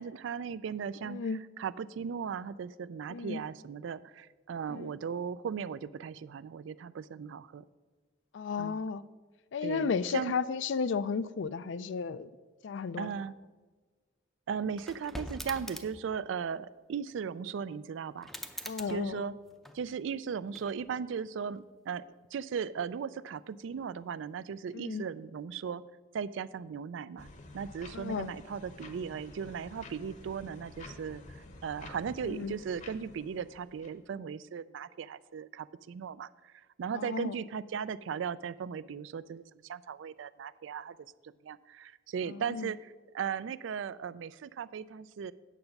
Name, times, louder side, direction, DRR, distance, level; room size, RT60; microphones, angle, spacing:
voice 1, 0.0-7.6 8.6-8.8 9.6-10.3 13.0-13.3 14.5-18.3 18.9-19.4 19.7-22.0 22.3-25.8 26.1-27.3 27.5-41.0 41.4-45.3, right 6 dB, 70° right, 17 dB, 0.3 m, -37 dB
voice 2, 1.0-1.4 3.1-3.4 4.7-4.9 8.3-9.0 9.5-12.3 12.6-13.1 18.7-19.2 24.7-25.0 27.9-28.3 32.3-32.5 37.0-37.3 42.3-42.7, left 5 dB, 65° left, 16 dB, 0.4 m, -33 dB
sound 1, 14.7-16.1 18.2-20.0 20.5-21.2, equal, ahead, 0.5 m, -44 dB
sound 2, 27.2-34.0, left 2 dB, 40° left, 0.9 m, -50 dB
9.1 x 6.9 x 5.3 m, 1.4 s
head